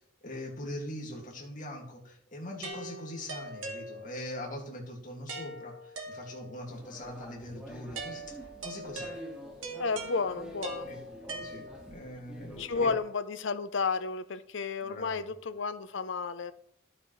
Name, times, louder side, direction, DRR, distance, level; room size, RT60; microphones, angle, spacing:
voice 1, 0.2-8.4 8.6-9.1 10.8-11.0 11.2-12.9 14.8-15.3, left 1 dB, 40° left, 2.2 m, -42 dB
sound 1, 2.6-4.4 5.3-6.7 7.9-12.1, right 2 dB, 80° right, 1.9 m, -42 dB
sound 2, 6.7-13.0, equal, 5° right, 1.9 m, -47 dB
voice 2, 9.8-10.9 12.6-16.5, left 4 dB, 65° left, 0.6 m, -32 dB
12.0 x 8.8 x 3.2 m
head